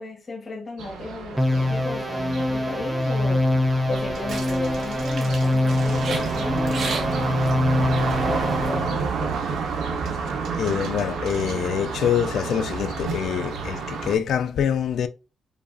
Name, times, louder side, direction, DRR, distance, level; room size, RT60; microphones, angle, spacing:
voice 1, 0.0-3.4 3.9-7.4 8.3-9.4, left 2 dB, 30° left, 1.1 m, -34 dB
sound 1, 0.8-14.2, right 5 dB, 80° right, 1.0 m, -30 dB
sound 2, 1.4-8.9, left 1 dB, 5° right, 0.7 m, -24 dB
sound 3, 3.8-8.8, right 3 dB, 50° right, 1.2 m, -36 dB
voice 2, 10.6-15.1, left 8 dB, 65° left, 0.4 m, -25 dB
5.2 x 2.4 x 2.4 m
cardioid pair, 145°, 0 cm